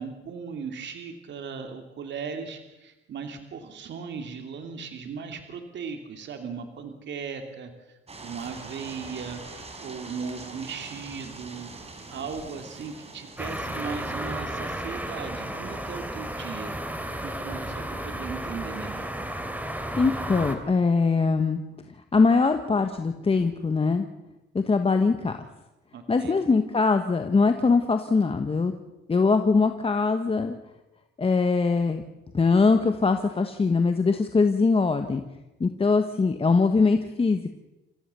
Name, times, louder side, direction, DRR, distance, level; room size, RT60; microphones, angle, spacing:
voice 1, 0.0-11.7 12.1-16.7 17.2-19.1 25.9-26.4, right 5 dB, 65° right, 6 dB, 2.7 m, -37 dB
sound 1, 8.1-14.4, right 3 dB, 30° right, 4.4 m, -43 dB
sound 2, 13.4-20.5, right 1 dB, 10° right, 3.2 m, -33 dB
voice 2, 20.0-21.6 22.1-24.1 24.5-25.4 26.1-28.7 29.1-30.6 31.2-32.0 32.3-35.2 35.6-37.5, left 4 dB, 30° left, 7 dB, 1.5 m, -22 dB
28.0 x 15.0 x 7.0 m, 1.0 s
cardioid pair, 90°, 20 cm